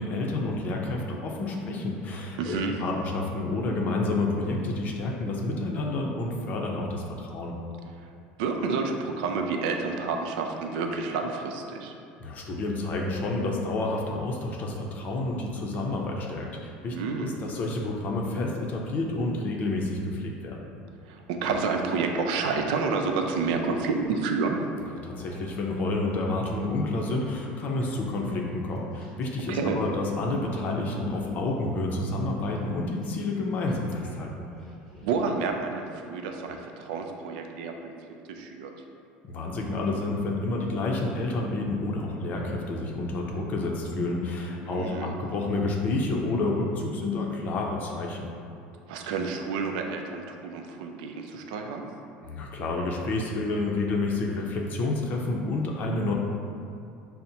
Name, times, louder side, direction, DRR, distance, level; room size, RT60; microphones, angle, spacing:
voice 1, 0.0-7.6 12.2-20.6 24.9-34.5 39.3-48.3 52.3-56.1, left 2 dB, 40° left, 0 dB, 0.5 m, -29 dB
voice 2, 2.4-2.8 8.4-11.9 16.9-17.4 21.1-24.6 29.5-29.8 35.0-37.9 38.3-38.7 44.6-45.1 48.9-51.8, right 4 dB, 85° right, 3 dB, 0.4 m, -29 dB
sound 1, 21.4-24.5 24.8-25.5 26.0-26.7 26.9-29.4 29.6-30.0 30.3-30.6 31.0-31.6 32.0-34.1 34.4-35.6 36.4-36.6, left 2 dB, 5° left, 1.1 m, -50 dB
5.6 x 2.1 x 2.7 m, 2.6 s
cardioid pair, 135°, 4 cm